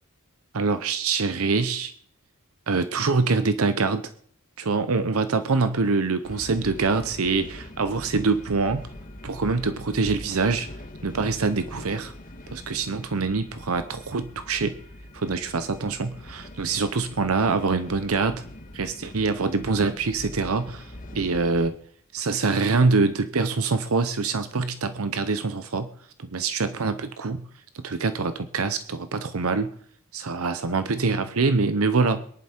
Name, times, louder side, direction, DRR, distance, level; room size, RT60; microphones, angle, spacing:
voice 1, 0.5-1.9 2.7-4.1 4.6-8.8 9.2-10.7 11.0-12.1 12.5-14.8 15.1-18.4 18.7-21.8 22.1-25.9 26.2-27.4 27.7-29.7 30.1-32.2, right 4 dB, 75° right, 10 dB, 0.8 m, -25 dB
sound 1, 6.2-21.7, left 1 dB, 40° left, 1.5 m, -42 dB
22.5 x 11.0 x 4.4 m, 0.62 s
head